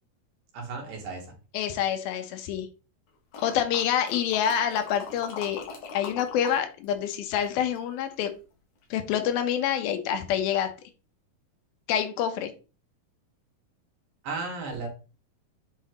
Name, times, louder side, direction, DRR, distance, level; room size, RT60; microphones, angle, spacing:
voice 1, 0.5-1.3 14.2-14.9, right 3 dB, 70° right, 0 dB, 3.3 m, -34 dB
voice 2, 1.5-2.7 3.4-5.6 5.9-8.3 8.9-10.7 11.9-12.5, left 9 dB, 80° left, 7 dB, 2.7 m, -27 dB
sound 1, 3.3-6.6 6.8-8.3 8.8-8.9, left 5 dB, 55° left, 2.5 m, -42 dB
7.8 x 4.1 x 2.9 m, 0.33 s
omnidirectional pair, 4.2 m